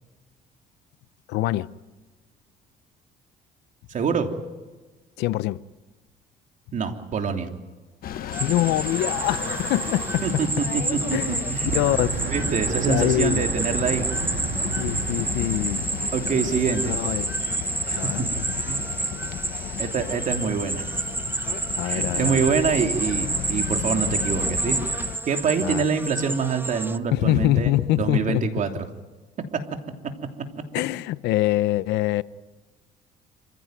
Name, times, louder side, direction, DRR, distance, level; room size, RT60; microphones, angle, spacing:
voice 1, 1.3-1.7 5.2-5.6 8.4-10.4 11.1-11.4 11.7-12.2 12.9-13.4 14.6-15.8 16.9-17.3 17.9-18.5 21.8-22.4 25.6-25.9 27.1-28.5 30.7-32.2, left 16 dB, 85° left, 0.8 m, -24 dB
voice 2, 3.9-4.3 6.7-7.5 10.2-11.8 12.3-14.1 16.1-17.0 17.9-18.3 18.7-18.9 19.8-21.0 21.8-24.8 25.3-28.7, right 6 dB, 50° right, 3.1 m, -25 dB
sound 1, 8.0-25.2, left 10 dB, 60° left, 1.3 m, -34 dB
sound 2, 8.3-27.0, right 3 dB, 10° right, 0.8 m, -29 dB
Breathing / Wind, 8.6-10.6 11.5-16.9, right 6 dB, 85° right, 3.4 m, -34 dB
27.5 x 15.5 x 9.3 m
cardioid pair, 110°, 17 cm